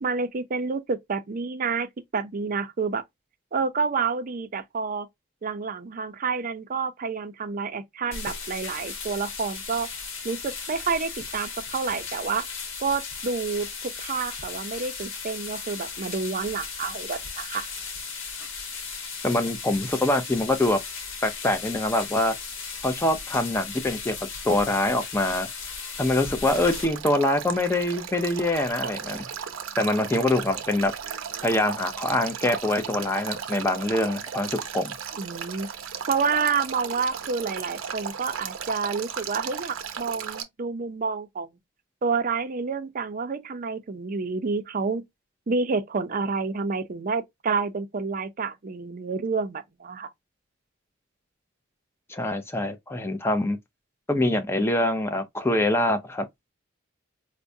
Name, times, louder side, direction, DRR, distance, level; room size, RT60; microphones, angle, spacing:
voice 1, 0.0-3.0 3.5-5.1 5.4-9.9 10.2-12.5 12.8-17.7 35.2-35.7 36.1-41.5 42.0-45.0 45.5-50.1, right 5 dB, 45° right, 0.5 m, -29 dB
sound 1, 8.1-26.8, left 5 dB, 75° left, 1.0 m, -36 dB
voice 2, 19.2-20.8 21.2-22.3 22.8-24.1 24.4-25.5 26.0-29.3 29.8-30.9 31.4-34.9 52.1-53.6 54.1-56.3, left 1 dB, 10° left, 0.5 m, -24 dB
Male speech man speaking / Stream / Trickle dribble, 26.5-40.4, right 7 dB, 90° right, 0.6 m, -35 dB
4.6 x 2.1 x 2.6 m
head